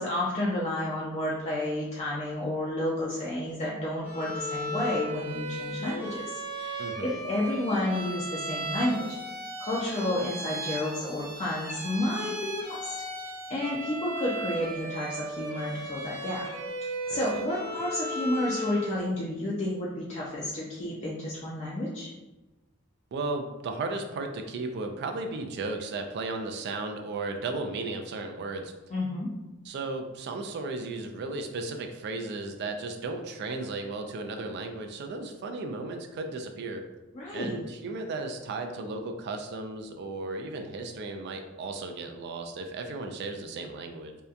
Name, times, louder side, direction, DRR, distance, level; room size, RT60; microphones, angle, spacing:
voice 1, 0.0-9.2 9.6-12.9 13.5-16.4 17.1-22.1 28.9-29.3 37.1-37.6, left 1 dB, 35° left, -6 dB, 0.4 m, -31 dB
Bowed string instrument, 4.0-18.9, right 1 dB, 10° right, 0.6 m, -36 dB
voice 2, 6.8-7.2 17.1-17.4 23.1-28.7 29.6-36.8 37.3-44.2, right 3 dB, 55° right, 5 dB, 0.3 m, -35 dB
2.7 x 2.1 x 2.3 m, 1.1 s
head